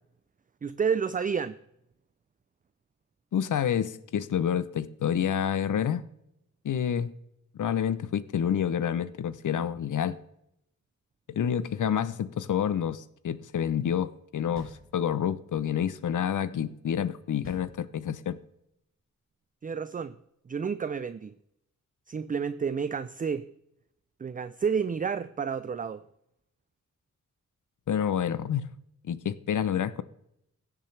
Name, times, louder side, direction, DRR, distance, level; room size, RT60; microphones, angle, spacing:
voice 1, 0.6-1.5 19.6-20.2 20.5-21.3 22.1-23.5 24.2-26.0, right 6 dB, 30° right, 0.4 m, -30 dB
voice 2, 3.3-6.0 6.6-7.1 7.5-10.2 11.3-18.4 27.9-28.7 29.1-30.0, left 8 dB, 80° left, 0.7 m, -28 dB
sound 1, 14.6-15.5 17.4-18.4, left 2 dB, 40° left, 3.6 m, -49 dB
16.0 x 7.3 x 3.3 m
wide cardioid pair, 95°, 30 cm